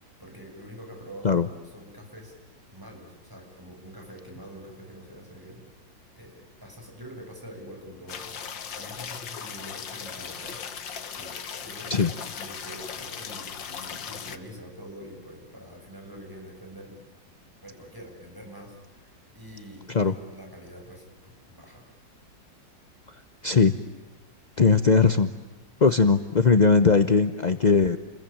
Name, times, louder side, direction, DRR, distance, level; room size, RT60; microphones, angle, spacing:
voice 1, 0.2-2.4 2.7-5.6 6.1-17.0 17.6-21.8, equal, 10° right, 1 dB, 7.5 m, -45 dB
sound 1, 8.1-14.4, left 7 dB, 75° left, 2.2 m, -38 dB
voice 2, 24.6-25.3 25.8-28.0, left 4 dB, 40° left, 10 dB, 0.6 m, -19 dB
30.0 x 22.0 x 8.8 m, 1.2 s
omnidirectional pair, 2.0 m